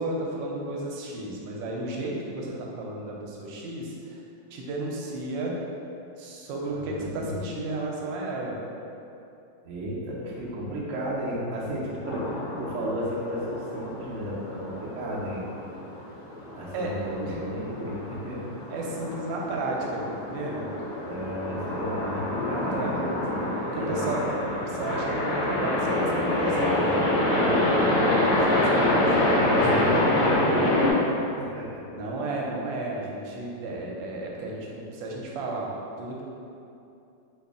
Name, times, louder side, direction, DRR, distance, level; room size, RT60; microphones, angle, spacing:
voice 1, 0.0-4.2 4.5-5.6 6.2-8.6 16.7-16.9 17.3-17.4 18.7-20.7 22.5-23.0 23.7-24.3 24.8-27.1 27.3-27.6 28.0-29.1 29.6-29.8 31.9-35.7 36.0-36.2, right 2 dB, 85° right, -2 dB, 1.3 m, -33 dB
voice 2, 6.6-7.3 9.6-15.4 16.5-18.5 21.0-22.7 23.7-24.5 28.7-30.7 31.3-31.8, equal, 60° right, -5 dB, 0.8 m, -34 dB
sound 1, 12.1-30.9, left 1 dB, 65° left, 0.8 m, -26 dB
3.2 x 2.7 x 3.5 m, 2.7 s
omnidirectional pair, 2.0 m